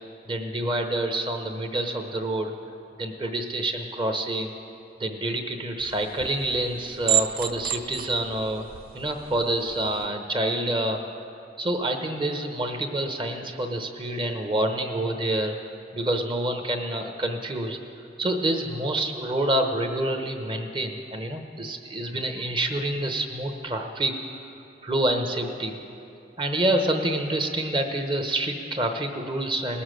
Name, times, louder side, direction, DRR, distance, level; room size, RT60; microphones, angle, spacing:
voice 1, 0.3-2.5 3.0-4.5 5.0-8.6 8.9-11.0 11.6-15.6 15.9-17.8 18.2-24.1 24.8-25.8 26.4-29.8, right 1 dB, 25° right, 5 dB, 0.9 m, -27 dB
sound 1, 5.8-10.1, right 12 dB, 50° right, 0.4 m, -31 dB
19.0 x 7.2 x 6.4 m, 2.6 s
head